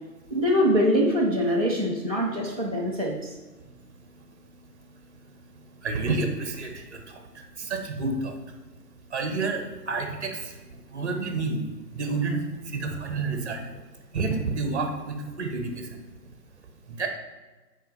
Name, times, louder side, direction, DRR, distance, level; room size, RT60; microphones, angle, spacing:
voice 1, 0.3-3.4, equal, 25° right, -5 dB, 0.5 m, -23 dB
voice 2, 4.0-8.5 9.0-11.6 11.9-13.8 14.1-16.0 16.9-17.1, right 3 dB, 40° right, 5 dB, 1.3 m, -31 dB
8.1 x 4.5 x 5.4 m, 1.2 s
figure-of-eight pair, 145°, 49 cm